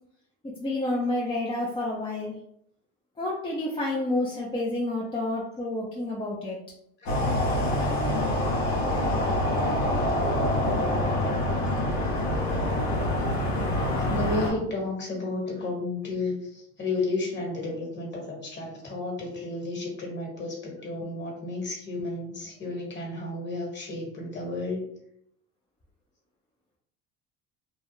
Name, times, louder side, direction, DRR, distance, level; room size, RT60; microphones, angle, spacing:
voice 1, 0.4-2.4 3.2-6.6, left 2 dB, 15° left, -4 dB, 0.5 m, -29 dB
sound 1, 7.1-14.5, left 1 dB, 85° left, 0.8 m, -26 dB
voice 2, 14.1-24.8, left 2 dB, 30° left, -2 dB, 1.3 m, -32 dB
2.3 x 2.0 x 3.0 m, 0.72 s
supercardioid pair, 85°, 34 cm